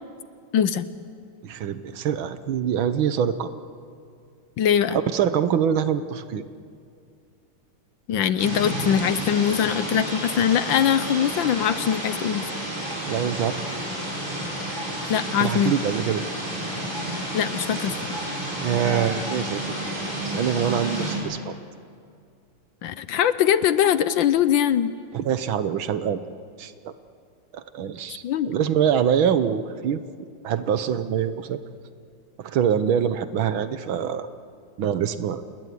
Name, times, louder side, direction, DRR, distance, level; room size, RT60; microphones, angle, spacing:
voice 1, 0.5-0.9 4.6-5.0 8.1-12.5 15.1-15.7 17.3-17.9 22.8-24.9 28.2-28.5, left 9 dB, 70° left, 14 dB, 1.4 m, -22 dB
voice 2, 1.4-3.5 4.9-6.4 13.1-13.6 15.4-16.2 18.6-19.7 20.3-21.5 25.1-26.9 27.5-30.0 30.4-31.6 32.4-34.3 34.8-35.4, right 8 dB, 70° right, 12 dB, 1.7 m, -24 dB
sound 1, 8.4-21.2, right 1 dB, 35° right, 7.1 m, -30 dB
28.0 x 20.5 x 9.4 m, 2.3 s
omnidirectional pair, 2.4 m